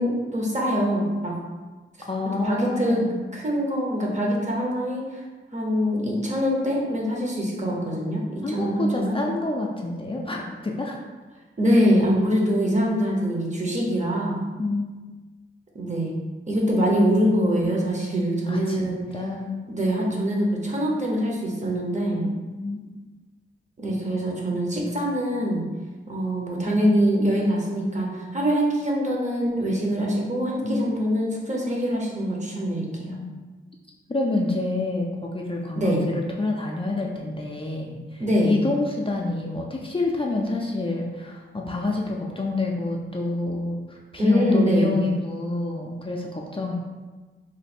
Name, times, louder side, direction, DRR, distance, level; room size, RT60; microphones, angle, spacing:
voice 1, 0.0-1.3 2.2-3.0 3.3-5.2 5.5-9.2 11.6-14.4 15.7-16.1 16.5-19.0 19.7-22.3 23.8-25.6 26.1-33.2 35.8-36.0 38.2-38.6 44.2-44.9, equal, 35° right, -2 dB, 0.8 m, -24 dB
voice 2, 2.1-3.1 8.4-11.0 14.6-14.9 18.5-19.6 22.5-22.9 30.6-31.0 33.1-33.5 34.1-46.8, left 2 dB, 25° left, -1 dB, 0.4 m, -28 dB
3.1 x 2.1 x 4.2 m, 1.3 s
wide cardioid pair, 70°, 21 cm